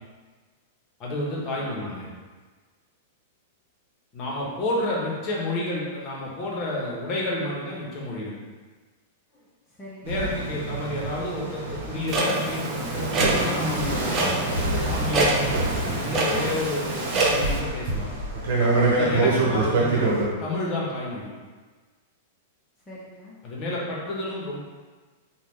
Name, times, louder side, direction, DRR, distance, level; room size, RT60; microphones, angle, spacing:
voice 1, 1.0-2.0 4.1-8.4 10.0-15.5 16.0-18.1 19.0-20.1 20.4-21.3 23.4-24.6, left 1 dB, 40° left, -4 dB, 0.9 m, -30 dB
voice 2, 1.6-2.1 9.3-10.3 22.9-23.3, equal, 15° left, -9 dB, 0.6 m, -45 dB
sound 1, 10.1-20.3, right 2 dB, 70° right, 0.9 m, -26 dB
Clock, 12.1-17.6, right 2 dB, 30° right, 0.5 m, -27 dB
2.9 x 2.2 x 3.5 m, 1.4 s
hypercardioid pair, 125°, 0 cm